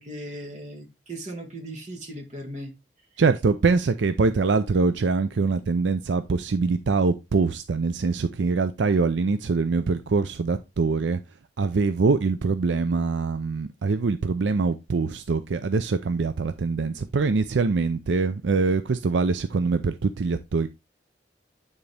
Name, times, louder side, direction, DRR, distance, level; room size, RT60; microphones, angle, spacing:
voice 1, 0.0-2.7, right 1 dB, 40° right, 1.6 m, -37 dB
voice 2, 3.2-11.2 11.6-20.7, right 4 dB, 80° right, 0.5 m, -24 dB
9.3 x 4.0 x 3.4 m
head